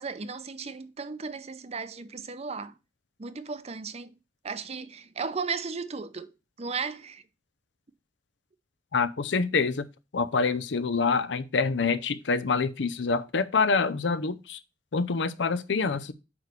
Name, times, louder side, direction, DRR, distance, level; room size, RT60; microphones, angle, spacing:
voice 1, 0.0-2.7 3.2-4.1 4.4-6.3 6.6-7.2, right 5 dB, 35° right, 0.6 m, -35 dB
voice 2, 8.9-9.9 10.1-14.6 14.9-16.1, left 4 dB, 80° left, 0.6 m, -26 dB
8.6 x 3.3 x 6.6 m
head